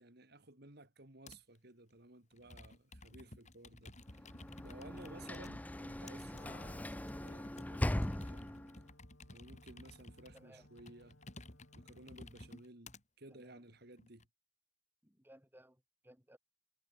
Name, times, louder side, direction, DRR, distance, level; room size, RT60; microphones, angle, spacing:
voice 1, 0.0-4.3 4.6-8.5 9.3-11.2 11.7-14.3, right 2 dB, 55° right, 2.9 m, -57 dB
Computer keyboard, 1.3-1.6 2.3-5.5 6.1-13.0 13.7-14.2, left 2 dB, 35° left, 5.3 m, -55 dB
Sliding door / Slam, 4.1-8.9, left 1 dB, 10° left, 0.5 m, -40 dB
Wind instrument woodwind instrument, 6.3-12.7, left 2 dB, 80° left, 7.5 m, -64 dB
voice 2, 10.3-10.7 13.3-13.6 15.0-16.4, right 1 dB, 10° right, 4.6 m, -62 dB
head